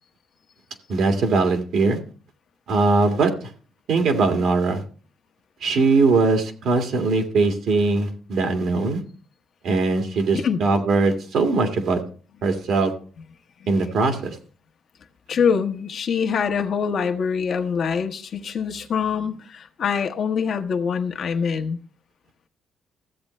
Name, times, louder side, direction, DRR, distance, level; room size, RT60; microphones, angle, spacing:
voice 1, 0.9-2.0 2.7-3.5 3.9-4.8 5.6-9.0 9.6-12.0 12.4-12.9 13.7-14.4, right 3 dB, 75° right, 2.0 m, -21 dB
voice 2, 15.3-21.8, left 6 dB, 60° left, 1.1 m, -24 dB
14.0 x 8.1 x 3.2 m
cardioid pair, 90°, 0 cm